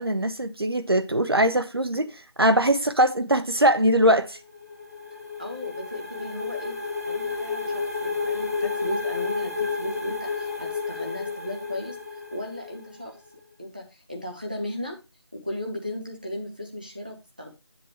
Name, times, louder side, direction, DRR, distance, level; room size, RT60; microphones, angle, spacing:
voice 1, 0.0-4.4, right 1 dB, 60° right, 1.1 m, -22 dB
sound 1, 4.4-13.0, left 4 dB, 35° right, 1.5 m, -31 dB
voice 2, 5.4-6.8 7.1-12.0 12.3-13.2 13.6-15.0 15.3-17.5, left 1 dB, 20° right, 0.9 m, -36 dB
8.8 x 7.6 x 3.0 m
figure-of-eight pair, 180°, 14 cm